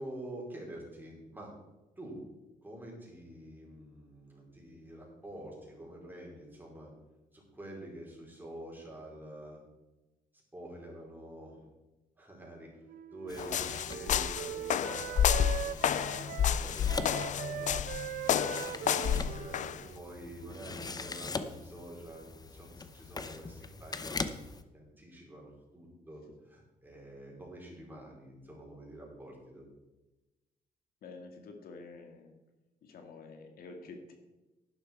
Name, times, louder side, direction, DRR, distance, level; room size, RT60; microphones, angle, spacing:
voice 1, 0.0-1.5 2.0-2.2 2.6-6.9 7.3-9.6 10.5-11.7 12.2-12.7 13.1-17.8 18.3-24.2 24.7-29.6, right 1 dB, 10° right, -3 dB, 5.1 m, -47 dB
Wind instrument woodwind instrument, 12.9-20.9, right 11 dB, 70° right, 0.6 m, -42 dB
sound 1, 13.3-24.6, left 3 dB, 25° left, 0.9 m, -43 dB
sound 2, 13.4-19.8, left 9 dB, 50° left, 0.5 m, -30 dB
voice 2, 31.0-32.3 32.8-34.1, left 3 dB, 70° left, 3 dB, 2.1 m, -48 dB
11.0 x 11.0 x 4.7 m, 1.1 s
cardioid pair, 100°, 16 cm